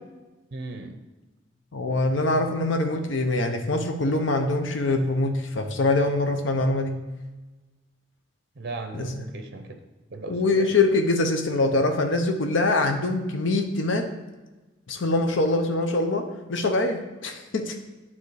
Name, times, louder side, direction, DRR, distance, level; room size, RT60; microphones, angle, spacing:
voice 1, 0.5-1.0 8.6-9.8 10.1-10.8, right 3 dB, 55° right, 6 dB, 0.6 m, -36 dB
voice 2, 1.7-6.9 8.9-9.1 10.3-14.1 14.9-17.8, left 2 dB, 75° left, 5 dB, 0.7 m, -24 dB
9.3 x 3.6 x 4.7 m, 1.2 s
head